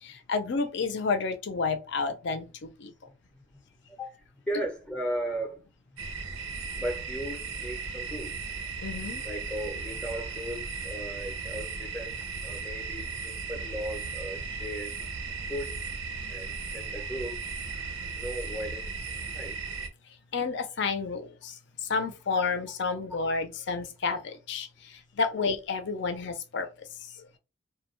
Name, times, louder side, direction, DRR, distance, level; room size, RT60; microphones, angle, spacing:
voice 1, 0.0-2.9 8.8-9.2 20.3-27.3, left 4 dB, 60° left, 0.5 m, -31 dB
voice 2, 3.1-3.4 3.9-4.2 4.5-5.6 5.9-6.0 6.8-8.3 9.2-15.0 15.5-15.8 16.3-17.4 18.0-19.6 25.3-25.5, equal, 5° left, 0.5 m, -37 dB
sound 1, 6.0-19.9, right 4 dB, 90° right, 0.6 m, -36 dB
2.3 x 2.2 x 3.1 m
head